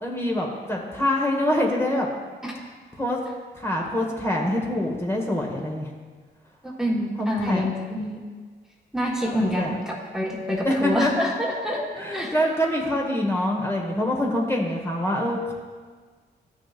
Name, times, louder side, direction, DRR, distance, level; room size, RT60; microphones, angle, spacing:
voice 1, 0.0-2.1 3.0-3.2 3.5-5.9 7.2-7.6 9.2-9.7 10.6-11.3 11.9-15.5, left 1 dB, 15° left, -2 dB, 1.5 m, -25 dB
voice 2, 6.6-8.2 8.9-11.9 12.1-12.3, equal, 5° right, -3 dB, 1.5 m, -27 dB
12.5 x 6.2 x 2.5 m, 1.5 s
cardioid pair, 60°, 19 cm